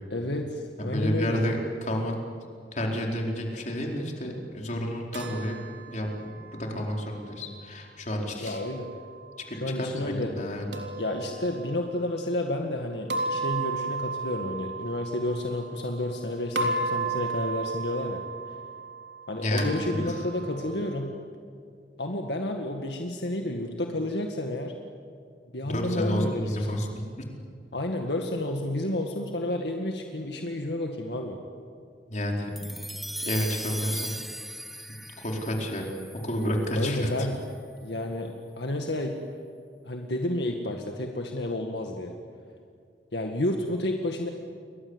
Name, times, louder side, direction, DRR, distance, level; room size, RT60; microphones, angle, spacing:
voice 1, 0.1-1.4 8.4-8.9 9.6-10.3 11.0-18.2 19.3-21.1 22.0-24.7 25.5-26.8 27.7-31.4 36.7-37.4 37.8-39.1 39.9-42.1 43.1-44.3, left 1 dB, 70° left, 2 dB, 2.0 m, -30 dB
voice 2, 0.8-2.2 2.7-5.6 5.9-8.6 9.5-10.6 19.4-20.2 25.6-27.0 32.1-32.5 33.2-34.2 35.2-35.9 36.2-37.3, equal, 45° left, 0 dB, 4.5 m, -30 dB
sound 1, 5.1-7.2 8.5-9.5 10.7-11.9 13.1-16.2 16.6-21.0, right 3 dB, 85° right, 3.5 m, -34 dB
sound 2, 32.6-37.1, equal, ahead, 0.6 m, -38 dB
30.0 x 23.0 x 8.2 m, 2.3 s
head